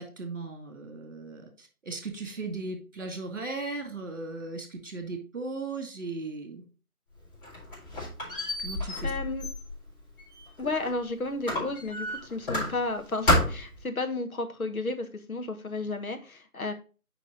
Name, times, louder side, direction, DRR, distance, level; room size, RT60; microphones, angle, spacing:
voice 1, 0.0-6.7 8.6-9.1, right 3 dB, 55° right, 4 dB, 2.2 m, -37 dB
Squeak, 7.2-11.0 11.4-13.0 13.3-13.8, left 1 dB, 35° left, 4.0 m, -30 dB
voice 2, 9.0-9.5 10.6-16.7, left 2 dB, 65° left, 7 dB, 1.3 m, -33 dB
6.6 x 5.4 x 3.8 m, 0.34 s
figure-of-eight pair, 170°, 45 cm